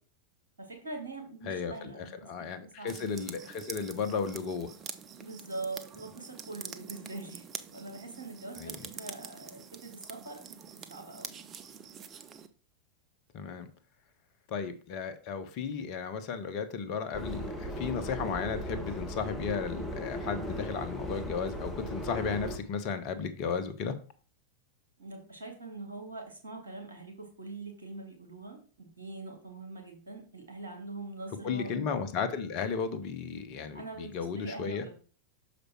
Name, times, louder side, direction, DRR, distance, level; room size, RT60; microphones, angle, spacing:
voice 1, 0.6-2.1 2.4-2.5 2.8-2.9 5.2-7.4 7.7-11.4 25.0-31.7 33.7-34.9, right 2 dB, 75° right, 2 dB, 2.2 m, -43 dB
voice 2, 1.4-4.7 8.6-8.8 13.3-13.7 14.5-23.9 31.4-34.9, left 6 dB, 40° left, 12 dB, 1.0 m, -34 dB
sound 1, 2.9-12.5, right 7 dB, 25° right, 0.7 m, -46 dB
Subway metro underground, 17.1-22.6, equal, ahead, 1.6 m, -37 dB
6.6 x 5.1 x 4.6 m, 0.41 s
figure-of-eight pair, 90°, 0 cm